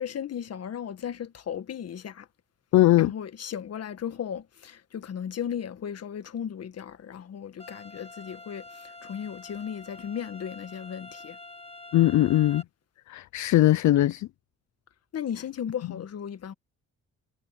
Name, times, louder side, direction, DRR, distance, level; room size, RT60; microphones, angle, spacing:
voice 1, 0.0-2.3 3.0-11.4 15.1-16.5, left 8 dB, 55° left, 1.7 m, -36 dB
voice 2, 2.7-3.1 11.9-12.6 13.1-14.3, left 14 dB, 70° left, 0.7 m, -20 dB
sound 1, 7.6-12.6, left 2 dB, 20° left, 1.9 m, -46 dB
cardioid pair, 90°, 30 cm